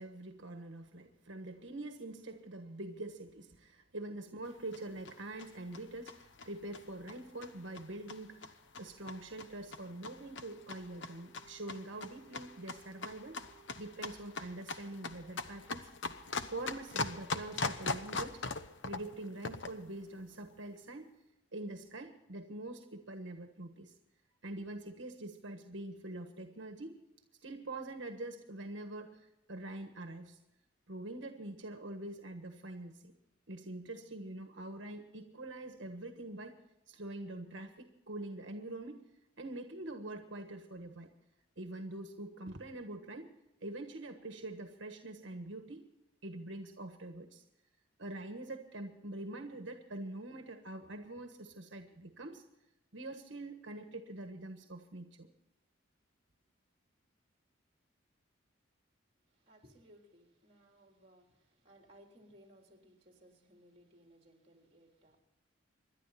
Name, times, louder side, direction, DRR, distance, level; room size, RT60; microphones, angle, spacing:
voice 1, 0.0-13.4 13.8-15.9 16.5-18.4 18.8-21.1 21.5-23.9 24.4-27.0 27.4-30.4 30.9-33.1 33.5-36.6 36.9-39.0 39.4-41.1 41.6-43.3 43.6-45.8 46.2-47.4 48.0-52.4 52.9-55.3, right 2 dB, 70° right, 5 dB, 1.5 m, -45 dB
sound 1, 4.5-19.9, left 3 dB, 65° left, 1.0 m, -42 dB
Wind instrument woodwind instrument, 10.4-14.8, right 8 dB, 50° left, 6.0 m, -64 dB
voice 2, 59.2-65.2, equal, 30° right, 2 dB, 3.6 m, -62 dB
26.5 x 11.5 x 4.2 m, 0.93 s
head